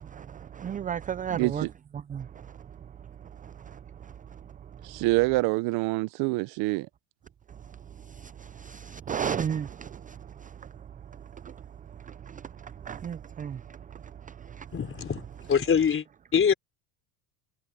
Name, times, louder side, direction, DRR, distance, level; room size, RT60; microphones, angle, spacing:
voice 1, 0.0-1.7 1.9-5.0 7.5-14.7, right 8 dB, 20° right, 0.4 m, -37 dB
voice 2, 1.3-1.7 4.8-6.9, right 23 dB, 65° right, 0.7 m, -26 dB
voice 3, 14.7-16.0 16.3-16.5, left 7 dB, 30° left, 4.2 m, -24 dB
supercardioid pair, 100°, 42 cm